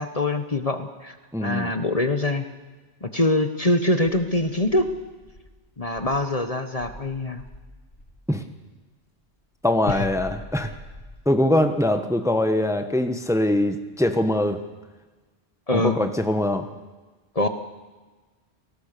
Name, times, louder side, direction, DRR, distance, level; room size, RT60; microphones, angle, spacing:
voice 1, 0.0-1.1 1.4-2.4 3.0-4.9 5.8-7.4 9.9-10.1 15.7-16.0 17.3-17.5, left 1 dB, 35° left, 8 dB, 1.3 m, -24 dB
voice 2, 1.3-1.7 8.3-8.4 9.6-10.7 11.2-14.6 15.7-16.7, left 1 dB, 5° right, 7 dB, 1.3 m, -22 dB
Insect, 4.0-6.3 6.8-8.2 9.8-11.5, left 1 dB, 85° left, 5.6 m, -43 dB
30.0 x 18.5 x 6.9 m, 1.3 s
omnidirectional pair, 1.1 m